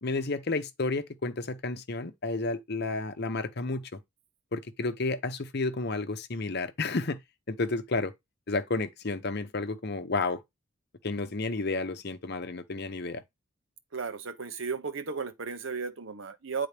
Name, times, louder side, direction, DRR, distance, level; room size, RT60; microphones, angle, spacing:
voice 1, 0.0-4.0 4.5-7.2 7.5-8.1 8.5-10.4 11.0-13.2, left 3 dB, 50° left, 0.8 m, -31 dB
voice 2, 13.9-16.7, right 5 dB, 60° right, 0.8 m, -34 dB
9.5 x 3.8 x 3.4 m
head